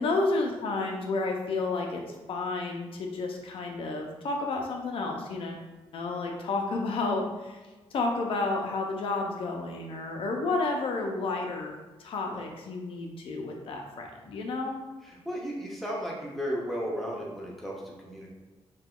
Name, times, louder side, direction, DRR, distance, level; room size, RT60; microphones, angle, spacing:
voice 1, 0.0-2.0 2.3-5.6 5.9-7.6 7.9-14.8, left 3 dB, 60° left, 1 dB, 0.4 m, -31 dB
voice 2, 15.3-18.3, equal, ahead, -3 dB, 0.5 m, -34 dB
2.9 x 2.2 x 3.6 m, 1.2 s
wide cardioid pair, 175°, 10 cm